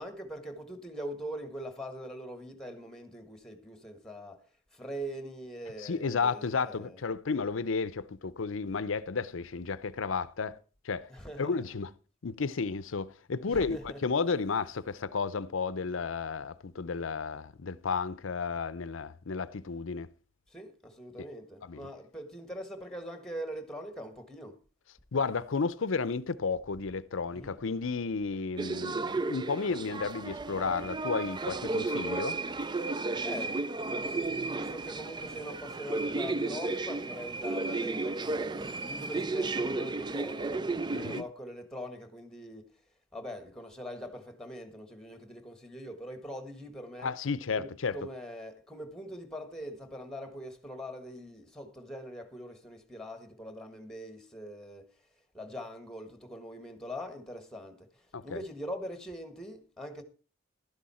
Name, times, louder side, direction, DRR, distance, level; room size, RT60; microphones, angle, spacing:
voice 1, 0.0-7.0 11.1-11.8 13.4-14.0 20.5-24.6 27.3-27.6 33.2-42.7 43.1-47.2 47.5-54.9 55.3-60.0, equal, 5° left, 1.5 m, -42 dB
voice 2, 5.8-10.6 10.8-11.1 11.4-11.9 12.2-20.1 21.7-21.9 25.1-32.4 40.9-41.2 47.0-48.0 58.1-58.4, left 4 dB, 75° left, 0.6 m, -32 dB
sound 1, 28.6-41.2, right 3 dB, 20° right, 0.4 m, -33 dB
12.0 x 10.5 x 4.3 m
head